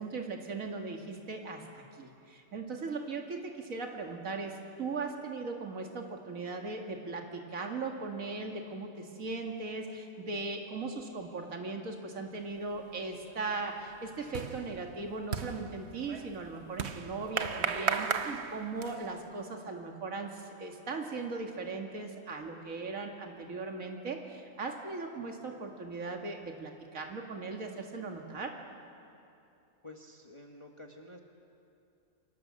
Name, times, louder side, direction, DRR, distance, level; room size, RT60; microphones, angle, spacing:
voice 1, 0.0-28.6, right 3 dB, 70° right, 2 dB, 2.5 m, -38 dB
sound 1, 12.7-13.1 13.4-19.2, right 6 dB, 50° right, 1.2 m, -36 dB
voice 2, 29.8-31.2, left 1 dB, 20° left, 2 dB, 1.7 m, -50 dB
29.0 x 24.5 x 7.6 m, 2.7 s
omnidirectional pair, 1.5 m